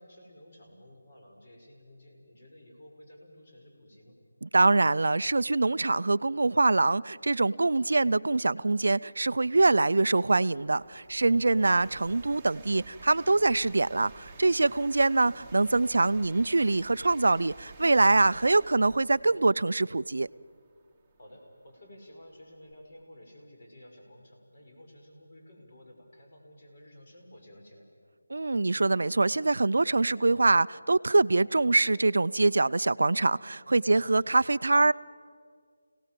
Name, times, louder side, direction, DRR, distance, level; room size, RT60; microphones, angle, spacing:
voice 1, 0.0-4.2 21.2-27.9 33.9-34.1, left 1 dB, 45° left, 1 dB, 5.6 m, -53 dB
voice 2, 4.4-20.3 28.3-34.9, right 3 dB, 70° right, 16 dB, 0.5 m, -24 dB
sound 1, 7.5-7.6 8.2-23.0, right 4 dB, 10° right, 1.5 m, -53 dB
28.0 x 18.0 x 7.6 m, 2.1 s
figure-of-eight pair, 170°, 0 cm